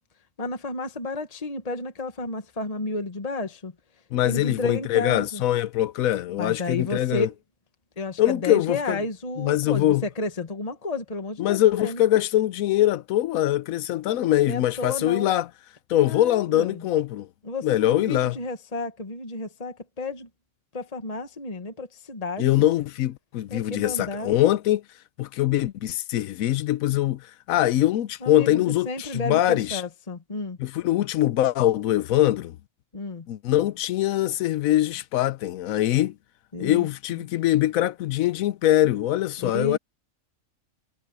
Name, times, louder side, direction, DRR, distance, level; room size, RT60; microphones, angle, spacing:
voice 1, 0.4-3.7 4.2-5.4 6.4-7.3 8.0-12.0 14.5-15.3 16.0-16.8 17.5-20.3 20.7-22.7 23.5-24.3 28.2-28.6 28.8-30.6 32.9-33.3 36.5-36.9 39.4-39.8, left 2 dB, 30° left, 1.5 m, -32 dB
voice 2, 4.1-7.3 8.2-9.0 9.4-10.0 11.4-15.5 15.9-17.3 17.6-18.4 22.4-24.8 25.2-29.8 30.6-32.6 33.3-36.1 36.6-39.8, left 13 dB, 90° left, 1.0 m, -23 dB
omnidirectional pair, 1.4 m